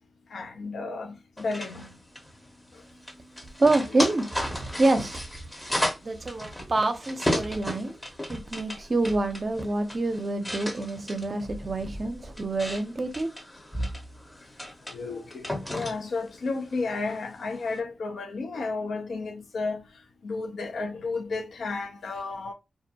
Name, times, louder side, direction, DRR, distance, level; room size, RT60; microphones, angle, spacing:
voice 1, 0.3-1.9 14.9-19.8 20.2-22.5, left 3 dB, 75° left, 0.5 m, -32 dB
sound 1, 1.4-17.8, equal, 15° left, 0.7 m, -35 dB
voice 2, 3.6-5.2 6.0-8.0 8.3-13.3, right 2 dB, 45° right, 0.6 m, -27 dB
2.4 x 2.1 x 2.7 m
cardioid pair, 50°, 0 cm